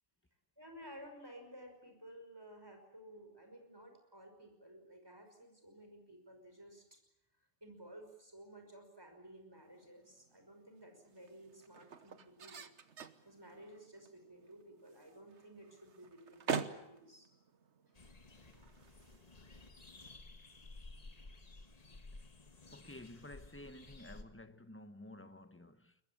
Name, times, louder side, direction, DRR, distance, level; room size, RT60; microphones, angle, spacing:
voice 1, 0.6-7.0 7.6-12.6 13.2-17.3, right 1 dB, 20° right, 5.7 m, -55 dB
sound 1, 9.6-19.9, right 6 dB, 80° right, 1.5 m, -47 dB
sound 2, 17.9-24.2, left 2 dB, 35° left, 1.5 m, -55 dB
voice 2, 22.7-26.0, left 1 dB, 10° left, 1.2 m, -52 dB
22.5 x 21.5 x 8.7 m
omnidirectional pair, 1.2 m